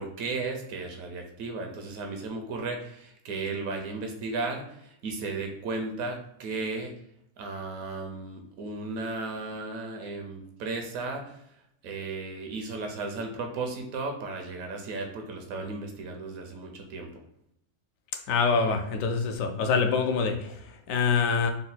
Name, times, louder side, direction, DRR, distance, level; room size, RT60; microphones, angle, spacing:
voice 1, 0.0-6.9 7.4-11.4 11.8-17.2, right 3 dB, 85° right, 3 dB, 1.1 m, -35 dB
voice 2, 18.3-20.6 20.9-21.5, left 5 dB, 75° left, 6 dB, 1.0 m, -25 dB
3.9 x 2.2 x 4.0 m, 0.77 s
omnidirectional pair, 1.4 m